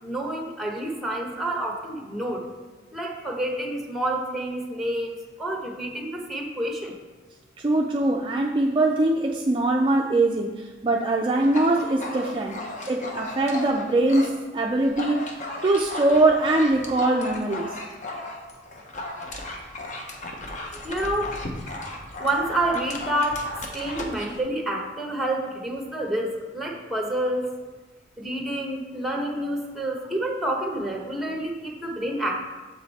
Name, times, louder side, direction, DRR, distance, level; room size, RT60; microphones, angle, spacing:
voice 1, 0.0-2.4 2.9-7.0 20.7-21.4 22.2-23.4 23.7-27.5 28.2-32.4, right 1 dB, ahead, 1 dB, 0.9 m, -28 dB
voice 2, 7.6-12.6 12.9-15.4 15.6-17.7, right 2 dB, 30° right, 1 dB, 0.4 m, -22 dB
Dog, 11.4-14.4 14.7-24.4, left 1 dB, 40° left, 0.8 m, -36 dB
7.1 x 5.1 x 4.1 m, 1.3 s
head